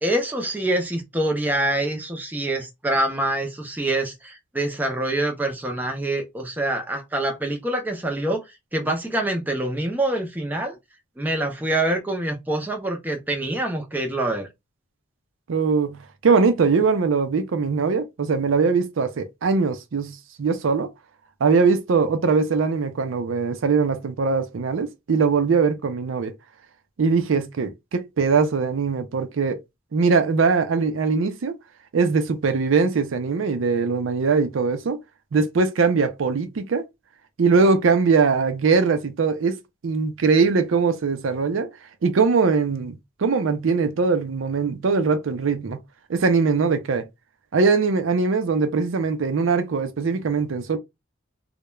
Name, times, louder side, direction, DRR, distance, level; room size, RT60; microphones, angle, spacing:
voice 1, 0.0-8.4 8.7-10.8 11.2-14.5, right 1 dB, 10° right, 0.5 m, -25 dB
voice 2, 15.5-20.9 21.4-26.3 27.0-29.6 29.9-31.6 31.9-35.0 35.3-36.8 37.4-39.6 39.8-41.7 42.0-45.8 46.1-47.0 47.5-50.8, right 4 dB, 85° right, 0.5 m, -21 dB
2.3 x 2.1 x 2.9 m
head